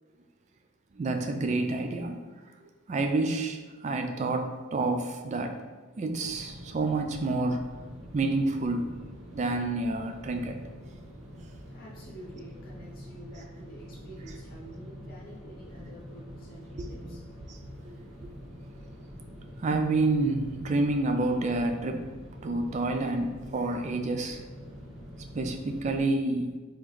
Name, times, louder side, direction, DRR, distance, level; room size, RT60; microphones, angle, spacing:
voice 1, 0.9-2.2 2.6-5.6 6.0-7.6 8.1-8.9 9.3-10.6 16.7-16.9 17.5-17.6 17.8-18.3 19.6-22.1 22.4-24.4 25.3-26.5, right 2 dB, 35° right, 5 dB, 0.3 m, -29 dB
sound 1, 6.1-26.0, equal, 60° right, 1.0 m, -45 dB
voice 2, 11.7-17.3, right 1 dB, 45° left, -5 dB, 0.8 m, -48 dB
3.8 x 3.0 x 3.1 m, 1.3 s
head